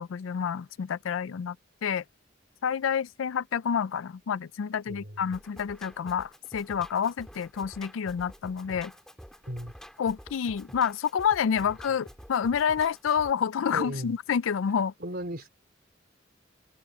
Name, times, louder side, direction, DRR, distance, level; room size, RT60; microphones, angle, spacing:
voice 1, 0.0-1.6 1.8-2.0 2.6-8.9 10.0-14.9, left 7 dB, 85° left, 0.4 m, -28 dB
voice 2, 4.9-5.2 9.5-9.7 13.7-14.2 15.0-15.5, right 1 dB, 55° right, 4.0 m, -36 dB
Drum kit, 5.3-13.3, equal, 5° left, 3.1 m, -49 dB
head